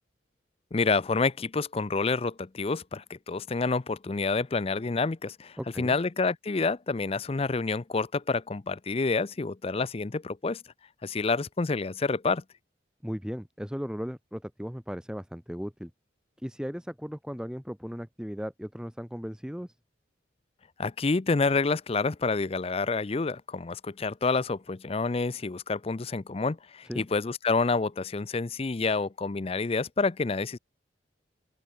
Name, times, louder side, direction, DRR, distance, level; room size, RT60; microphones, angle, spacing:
voice 1, 0.7-10.6 11.0-12.4 20.8-30.6, left 4 dB, 30° left, 0.5 m, -28 dB
voice 2, 5.6-6.0 13.0-15.9 16.4-19.8 26.9-27.1, equal, 5° right, 1.7 m, -36 dB
open air
head